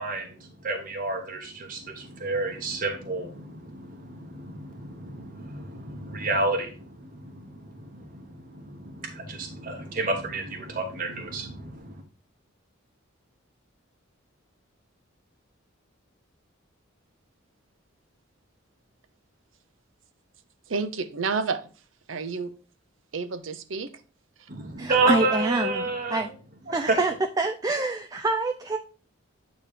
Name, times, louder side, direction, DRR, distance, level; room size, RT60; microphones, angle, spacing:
voice 1, 0.0-12.0 24.5-26.2 26.7-27.0, right 2 dB, 45° right, 0.9 m, -30 dB
voice 2, 20.7-21.7 22.1-22.5 23.1-24.0, right 4 dB, 80° right, 0.7 m, -30 dB
voice 3, 24.8-26.3 26.7-28.8, right 3 dB, 20° right, 0.4 m, -26 dB
8.8 x 3.0 x 4.9 m
head